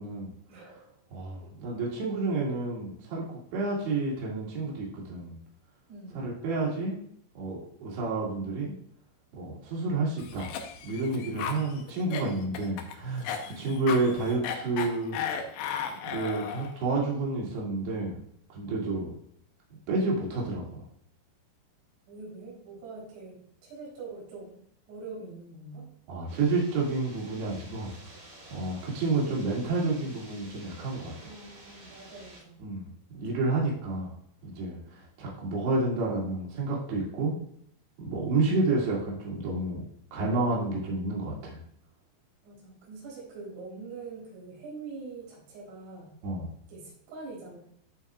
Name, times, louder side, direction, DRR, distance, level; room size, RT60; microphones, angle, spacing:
voice 1, 0.5-0.9 1.4-1.5 5.9-6.3 13.5-13.7 22.1-24.6 24.9-25.9 31.2-32.6 33.1-33.4 42.4-46.1 46.7-47.6, right 3 dB, 90° right, -5 dB, 6.3 m, -44 dB
voice 2, 1.1-5.4 6.2-7.0 7.4-8.7 9.4-10.5 10.8-15.2 16.1-18.1 18.5-19.1 19.9-20.8 26.1-27.9 28.5-31.1 32.6-32.9 33.1-34.1 34.4-37.4 38.0-39.8 40.1-41.6 46.2-46.5, right 3 dB, 60° right, -4 dB, 4.0 m, -30 dB
Cough, 10.2-16.8, left 7 dB, 75° left, 2.6 m, -35 dB
sound 1, 26.3-32.4, right 1 dB, 25° right, 2.5 m, -51 dB
15.5 x 5.3 x 2.4 m, 0.68 s
omnidirectional pair, 5.7 m